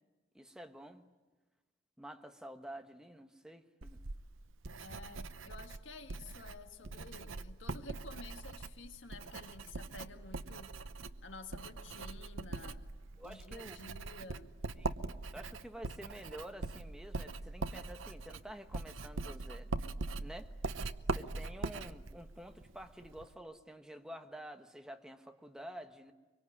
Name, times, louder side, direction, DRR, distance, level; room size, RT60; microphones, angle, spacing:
voice 1, 0.3-1.1 2.0-4.0 11.9-12.0 13.2-13.8 14.8-19.7 20.2-20.5 21.1-26.1, right 1 dB, 5° right, 5 dB, 1.3 m, -49 dB
Writing, 3.8-23.3, right 3 dB, 90° right, 0.9 m, -42 dB
voice 2, 4.8-10.7 11.2-12.8 13.2-14.5, left 3 dB, 70° left, 6 dB, 1.8 m, -51 dB
24.5 x 24.0 x 9.8 m, 1.3 s
head